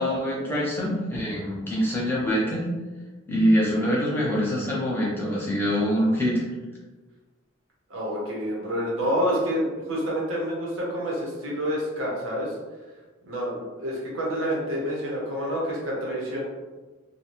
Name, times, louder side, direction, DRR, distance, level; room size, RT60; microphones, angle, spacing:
voice 1, 0.0-2.7 3.3-6.5, equal, 10° left, -6 dB, 0.7 m, -24 dB
voice 2, 7.9-12.5 13.2-16.4, equal, 75° right, -4 dB, 0.9 m, -28 dB
2.7 x 2.3 x 3.0 m, 1.3 s
head